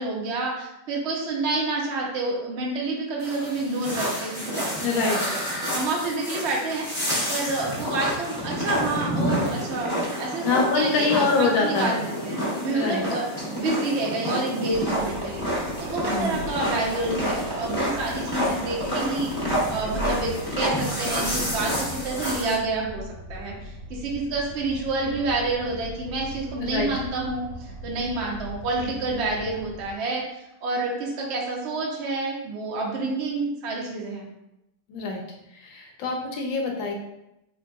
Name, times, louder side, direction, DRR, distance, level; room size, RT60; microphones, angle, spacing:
voice 1, 0.0-5.2 5.7-6.9 7.3-9.9 10.2-10.5 10.7-13.2 13.6-15.5 15.8-23.0 23.3-34.3, right 2 dB, 65° right, -2 dB, 0.6 m, -28 dB
sound 1, 3.2-22.5, equal, 20° left, 0.6 m, -29 dB
voice 2, 4.8-5.2 10.4-12.0 12.7-13.0 16.0-16.3 26.6-26.9 34.9-35.2 35.6-36.9, left 4 dB, 85° left, 1 dB, 1.4 m, -25 dB
sound 2, 14.7-29.9, equal, 85° right, 1.3 m, -40 dB
3.7 x 3.3 x 2.3 m, 0.87 s
omnidirectional pair, 2.0 m